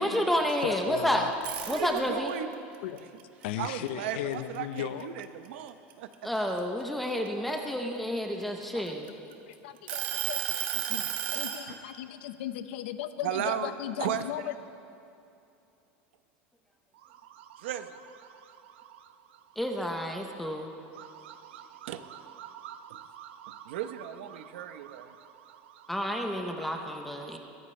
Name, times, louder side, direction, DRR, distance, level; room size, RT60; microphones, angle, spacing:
voice 1, 0.0-1.3 1.7-2.3 6.2-9.1 19.6-20.7 25.9-27.4, equal, ahead, 3 dB, 0.7 m, -30 dB
voice 2, 0.6-1.3 2.8-3.0 3.4-5.1 7.6-7.7 8.7-8.9 9.5-14.5, left 12 dB, 65° left, 11 dB, 0.8 m, -37 dB
sound 1, 1.3-2.3 2.7-4.6 5.0-5.2 5.7-7.5 8.2-9.3 9.9-11.6, right 10 dB, 60° right, 1.4 m, -33 dB
voice 3, 1.7-2.5 3.0-3.1 3.6-6.1 6.5-6.6 8.3-8.5 8.7-8.9 11.7-11.8 13.2-14.5 16.9-19.6 20.4-27.4, right 10 dB, 80° right, 10 dB, 0.8 m, -38 dB
22.0 x 16.0 x 3.3 m, 2.7 s
supercardioid pair, 180°, 6 cm